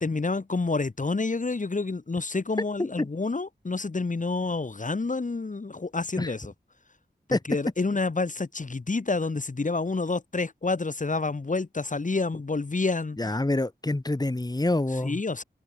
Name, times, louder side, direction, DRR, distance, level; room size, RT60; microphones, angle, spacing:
voice 1, 0.0-6.5 7.3-13.2 15.0-15.4, left 3 dB, 50° left, 2.0 m, -28 dB
voice 2, 13.2-15.2, left 2 dB, 20° left, 2.0 m, -26 dB
cardioid pair, 50°, 17 cm